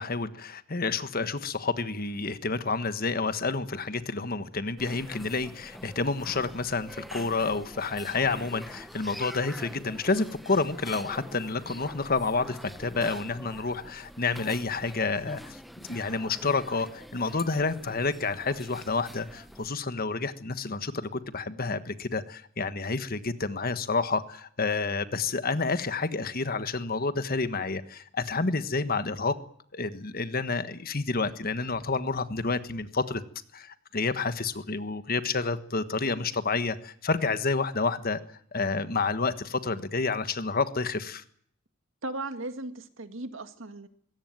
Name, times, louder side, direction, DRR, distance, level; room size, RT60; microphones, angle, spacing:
voice 1, 0.0-15.6 15.9-29.3 29.7-33.2 33.5-38.2 38.5-41.2, left 4 dB, 50° left, 12 dB, 1.4 m, -29 dB
sound 1, 4.8-19.7, equal, ahead, 0.9 m, -45 dB
voice 2, 42.0-43.9, right 2 dB, 75° right, 9 dB, 2.0 m, -37 dB
22.0 x 17.0 x 9.1 m, 0.64 s
head